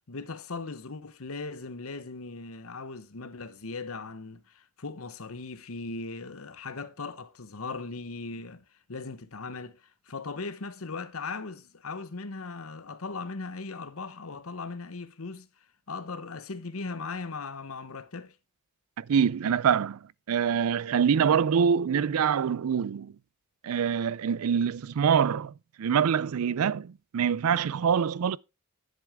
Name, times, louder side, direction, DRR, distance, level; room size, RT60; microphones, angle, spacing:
voice 1, 0.0-8.6 8.9-15.5 15.9-18.4, left 4 dB, 75° left, 1.0 m, -38 dB
voice 2, 19.0-20.0 20.3-23.1 23.6-25.5 25.8-28.4, right 7 dB, 85° right, 0.4 m, -25 dB
10.5 x 7.8 x 3.5 m
head